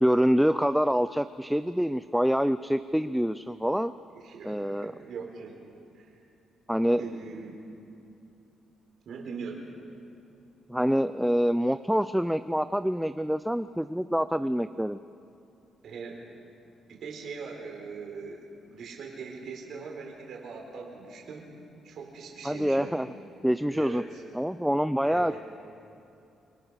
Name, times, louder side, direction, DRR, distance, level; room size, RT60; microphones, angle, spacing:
voice 1, 0.0-3.9 4.4-4.9 6.7-7.0 10.7-15.0 22.4-23.1 23.4-24.0 24.3-25.3, equal, ahead, 12 dB, 0.4 m, -26 dB
voice 2, 4.1-5.6 5.9-6.1 6.9-7.6 9.0-9.6 15.8-16.2 16.9-21.5 21.8-23.0 23.7-24.2 25.0-25.4, right 5 dB, 65° right, 0 dB, 4.3 m, -41 dB
27.0 x 19.0 x 6.4 m, 2.7 s
cardioid pair, 90°, 0 cm